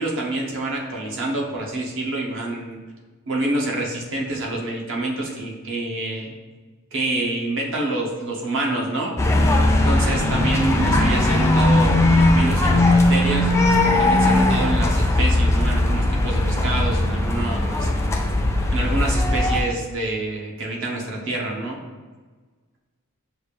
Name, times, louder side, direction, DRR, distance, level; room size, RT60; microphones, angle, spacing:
voice 1, 0.0-2.8 3.3-6.4 6.9-9.1 9.8-13.5 14.0-17.9 18.7-21.8, right 2 dB, 65° right, -2 dB, 0.8 m, -27 dB
sound 1, 9.2-19.6, left 1 dB, 15° left, 0.3 m, -18 dB
6.6 x 2.4 x 3.2 m, 1.4 s
head